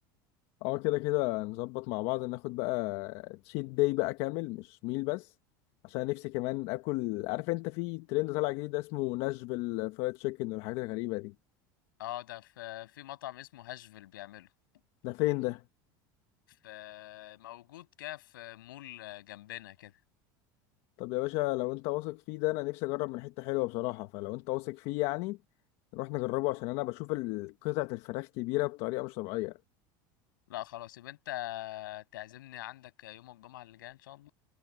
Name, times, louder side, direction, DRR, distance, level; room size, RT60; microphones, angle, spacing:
voice 1, 0.6-5.3 5.8-11.3 15.0-15.6 21.0-25.4 25.9-29.6, left 21 dB, 65° left, 1.3 m, -33 dB
voice 2, 12.0-14.5 16.5-20.0 30.5-34.3, left 15 dB, 90° left, 7.8 m, -43 dB
supercardioid pair, 105°, 11 cm